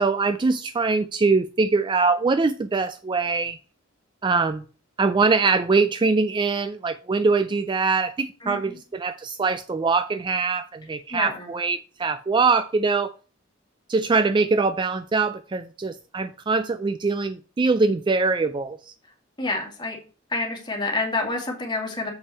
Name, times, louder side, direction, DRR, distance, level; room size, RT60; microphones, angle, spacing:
voice 1, 0.0-3.6 4.2-4.6 5.0-13.1 13.9-18.9, right 4 dB, 25° right, 0.3 m, -23 dB
voice 2, 8.4-8.8 11.1-11.5 19.4-20.0 20.3-22.1, left 2 dB, 25° left, 2.2 m, -28 dB
6.9 x 5.3 x 4.2 m
head